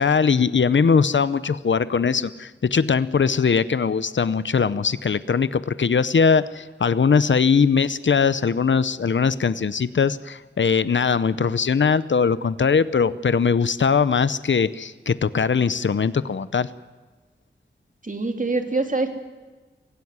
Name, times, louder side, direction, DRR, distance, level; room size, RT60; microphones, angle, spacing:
voice 1, 0.0-16.7, left 5 dB, 75° left, 16 dB, 0.7 m, -20 dB
voice 2, 18.0-19.1, right 3 dB, 40° right, 5 dB, 2.8 m, -24 dB
24.5 x 16.0 x 9.6 m, 1.3 s
wide cardioid pair, 65°, 20 cm